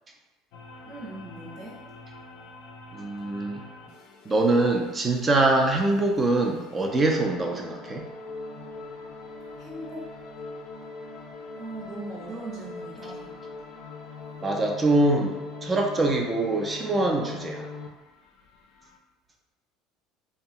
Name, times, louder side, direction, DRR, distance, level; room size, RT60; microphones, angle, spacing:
sound 1, 0.5-19.0, left 3 dB, 65° left, 0.4 m, -42 dB
voice 1, 0.8-1.8 9.6-10.1 11.6-13.3 16.0-16.2, right 2 dB, 60° right, -8 dB, 1.0 m, -39 dB
voice 2, 2.9-3.6 4.3-8.0 14.4-15.4 15.6-17.7, right 2 dB, 20° right, 2 dB, 0.4 m, -24 dB
2.7 x 2.3 x 2.7 m, 1.2 s
cardioid pair, 140°, 0 cm